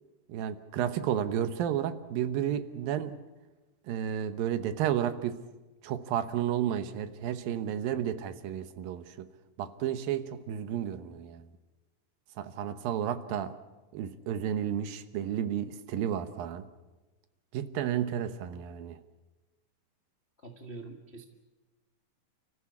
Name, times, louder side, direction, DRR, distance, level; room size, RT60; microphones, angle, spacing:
voice 1, 0.3-3.2 3.9-5.4 5.8-9.3 9.6-11.4 12.4-13.6 13.9-16.7 17.5-19.0, right 10 dB, 75° right, 2.7 m, -32 dB
voice 2, 20.4-21.2, right 3 dB, 45° left, 0.8 m, -44 dB
30.0 x 14.5 x 8.5 m
omnidirectional pair, 4.2 m